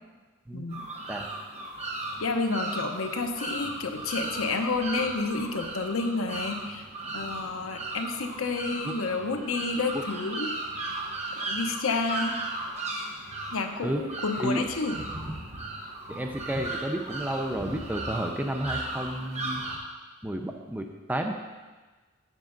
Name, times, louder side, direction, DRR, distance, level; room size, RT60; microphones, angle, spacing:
sound 1, 0.7-19.8, right 2 dB, 35° right, 1.0 m, -36 dB
voice 1, 2.2-6.9 7.1-10.5 11.4-12.4 13.5-15.0, left 3 dB, 80° left, 5 dB, 0.8 m, -30 dB
voice 2, 16.1-19.6 20.2-21.3, right 1 dB, 10° right, 3 dB, 0.4 m, -31 dB
8.5 x 7.3 x 3.9 m, 1.3 s
head